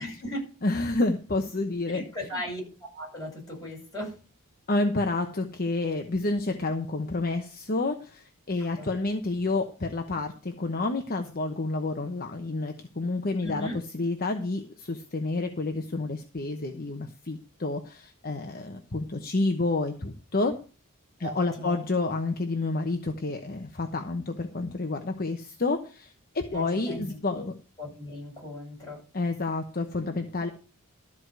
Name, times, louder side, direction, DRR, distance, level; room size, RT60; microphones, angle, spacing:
voice 1, 0.0-0.5 1.9-2.6 2.9-4.2 8.7-8.9 13.4-13.8 21.2-21.8 26.5-27.5 27.8-29.0, left 1 dB, 15° left, -3 dB, 7.7 m, -37 dB
voice 2, 0.6-2.0 4.7-13.7 13.9-20.6 21.2-27.5 29.1-30.5, left 2 dB, 45° left, 5 dB, 1.0 m, -29 dB
13.5 x 4.8 x 7.9 m, 0.35 s
head